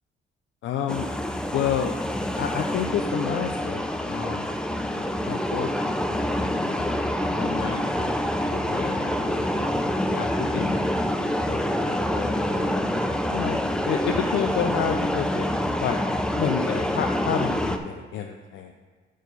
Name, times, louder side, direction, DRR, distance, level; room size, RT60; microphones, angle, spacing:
voice 1, 0.6-1.1 1.5-1.9 2.4-4.6 4.9-7.0 7.4-8.2 8.5-9.5 10.0-12.8 13.3-15.5 15.8-16.0 16.4-18.7, left 8 dB, 70° left, 3 dB, 0.6 m, -30 dB
sound 1, 0.9-17.8, left 1 dB, 5° left, 0.6 m, -26 dB
6.5 x 6.3 x 5.4 m, 1.5 s
cardioid pair, 90°, 20 cm